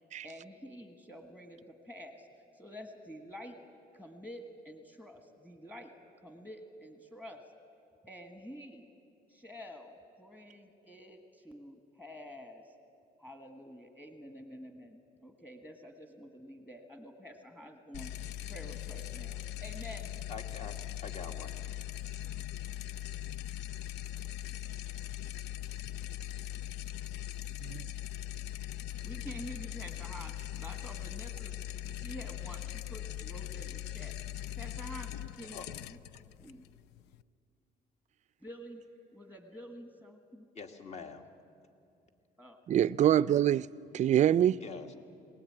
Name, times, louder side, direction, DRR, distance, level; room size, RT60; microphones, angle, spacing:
voice 1, 0.2-2.3 2.5-3.6 3.9-5.9 6.2-7.4 8.0-8.9 9.3-12.7 13.2-18.1 18.5-20.1 29.0-31.6 31.8-34.2 34.6-36.0 36.4-36.6 38.4-38.8 39.1-40.5 42.4-42.6, equal, 10° left, 1.6 m, -48 dB
sound 1, 17.9-37.2, left 12 dB, 85° left, 0.5 m, -40 dB
voice 2, 20.3-20.8 21.0-21.6 35.5-35.7 40.5-41.2 44.6-44.9, left 5 dB, 40° left, 1.8 m, -44 dB
voice 3, 42.7-43.7 43.9-44.6, right 11 dB, 45° right, 0.4 m, -25 dB
22.0 x 19.0 x 8.8 m
cardioid pair, 110°, 17 cm